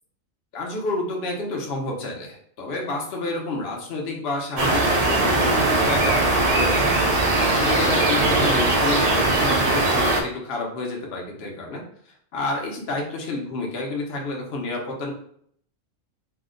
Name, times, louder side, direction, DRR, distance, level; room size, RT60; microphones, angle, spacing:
voice 1, 0.5-7.0 7.5-11.8 12.3-15.1, left 2 dB, 55° left, 0 dB, 0.9 m, -29 dB
sound 1, 4.6-10.2, right 2 dB, 55° right, 0.4 m, -20 dB
2.8 x 2.1 x 3.7 m, 0.63 s
omnidirectional pair, 1.3 m